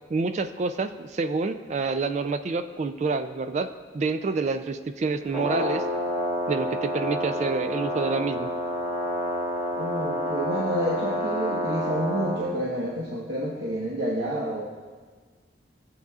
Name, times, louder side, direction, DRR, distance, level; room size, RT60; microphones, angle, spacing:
voice 1, 0.1-5.8 6.5-8.5, right 4 dB, 40° right, 10 dB, 0.3 m, -28 dB
Brass instrument, 5.3-12.4, equal, 15° right, 1.9 m, -29 dB
voice 2, 9.7-14.7, right 1 dB, 60° right, -5 dB, 1.1 m, -29 dB
14.0 x 7.7 x 2.4 m, 1.4 s
head